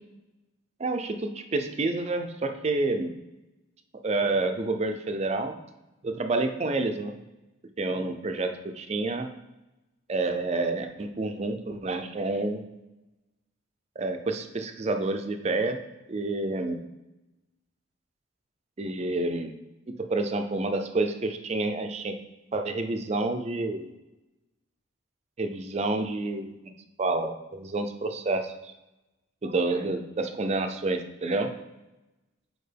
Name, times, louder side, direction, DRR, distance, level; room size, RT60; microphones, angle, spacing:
voice 1, 0.8-3.1 4.0-5.6 6.0-7.2 7.8-9.3 10.1-12.6 14.0-15.8 16.1-16.8 18.8-19.5 20.0-22.2 22.5-23.9 25.4-26.5 27.0-28.7 29.4-31.5, right 2 dB, 30° right, 6 dB, 0.4 m, -29 dB
6.5 x 4.6 x 3.4 m, 1.0 s
head